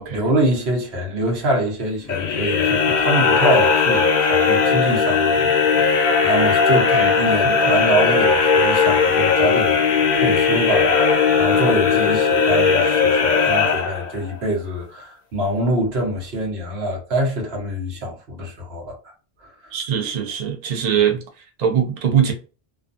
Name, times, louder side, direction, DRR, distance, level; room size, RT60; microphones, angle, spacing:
voice 1, 0.0-5.5 5.8-11.0 11.4-19.0 19.4-19.7, right 1 dB, 85° right, 1.1 m, -25 dB
sound 1, 2.1-14.3, left 5 dB, 55° left, 0.5 m, -18 dB
voice 2, 6.7-7.1 7.4-7.8 19.7-21.2 21.6-22.3, right 8 dB, 45° right, 0.6 m, -22 dB
2.5 x 2.3 x 2.5 m
omnidirectional pair, 1.0 m